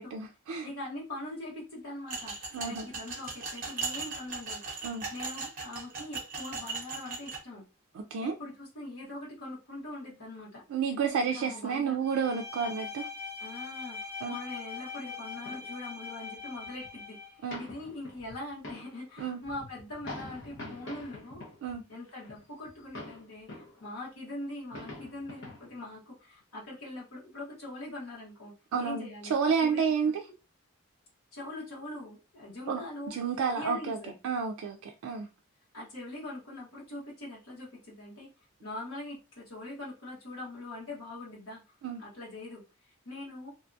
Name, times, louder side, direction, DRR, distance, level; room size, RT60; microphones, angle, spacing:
voice 1, 0.0-0.7 2.5-2.9 4.8-5.0 7.9-8.3 10.7-13.1 14.2-14.4 17.4-17.6 19.2-19.4 21.6-21.8 28.7-30.2 32.7-32.8 33.1-34.0 34.2-35.3 41.8-42.0, right 6 dB, 80° right, 4 dB, 0.3 m, -30 dB
voice 2, 0.6-7.6 8.2-10.6 11.2-12.0 13.4-21.4 21.9-30.1 31.3-33.2 33.5-34.1 35.7-38.3 38.6-41.6 42.0-43.5, left 2 dB, 80° left, -6 dB, 1.2 m, -42 dB
sound 1, 2.1-7.4, right 4 dB, 40° right, 0.8 m, -38 dB
Bowed string instrument, 12.0-17.4, left 5 dB, 30° left, 1.0 m, -42 dB
sound 2, 15.3-15.7 16.4-16.5 16.6-17.0 17.5-23.8 24.2-24.3 24.5-25.8 26.4-26.5, left 2 dB, 55° left, 0.8 m, -45 dB
2.7 x 2.3 x 2.5 m, 0.30 s
head